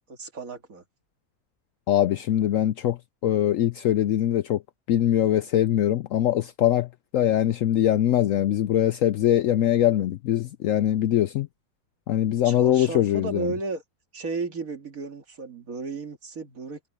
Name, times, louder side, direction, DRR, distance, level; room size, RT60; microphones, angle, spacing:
voice 1, 0.1-0.8 12.4-13.8 14.1-16.9, right 4 dB, 60° right, 2.4 m, -34 dB
voice 2, 1.9-4.6 4.9-11.5 12.1-13.5, left 11 dB, 70° left, 0.8 m, -22 dB
omnidirectional pair, 1.7 m